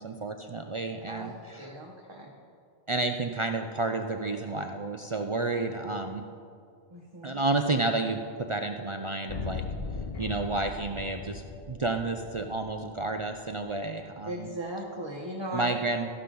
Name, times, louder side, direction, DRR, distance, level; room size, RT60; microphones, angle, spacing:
voice 1, 0.0-1.7 2.9-6.2 7.2-9.6 10.2-14.5 15.5-16.1, right 3 dB, 50° right, 5 dB, 0.4 m, -31 dB
voice 2, 1.6-2.3 6.9-7.4 14.3-15.7, right 1 dB, 25° right, -1 dB, 0.9 m, -38 dB
sound 1, 9.3-13.3, left 5 dB, 40° left, 0.6 m, -38 dB
13.5 x 11.5 x 3.9 m, 2.4 s
omnidirectional pair, 1.1 m